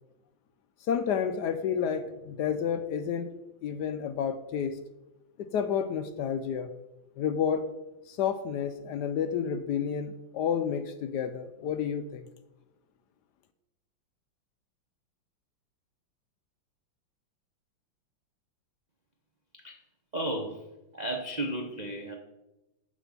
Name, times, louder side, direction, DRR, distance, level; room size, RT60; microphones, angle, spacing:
voice 1, 0.9-3.3 3.6-4.8 5.4-6.7 7.2-7.7 8.1-12.3, left 7 dB, 70° left, 10 dB, 1.0 m, -30 dB
voice 2, 20.1-20.7 20.9-22.1, right 1 dB, 65° right, 2 dB, 0.4 m, -33 dB
7.3 x 5.2 x 7.2 m, 0.97 s
omnidirectional pair, 2.1 m